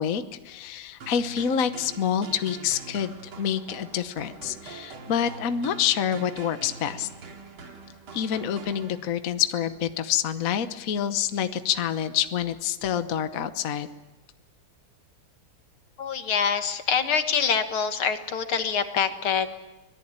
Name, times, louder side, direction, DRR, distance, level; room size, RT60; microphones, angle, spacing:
voice 1, 0.0-7.1 8.1-13.9, left 9 dB, 50° left, 10 dB, 1.2 m, -27 dB
sound 1, 1.0-9.4, right 4 dB, 75° right, 3.1 m, -44 dB
voice 2, 16.0-19.5, left 6 dB, 75° left, 8 dB, 2.4 m, -25 dB
25.0 x 19.5 x 8.9 m, 1.1 s
omnidirectional pair, 2.3 m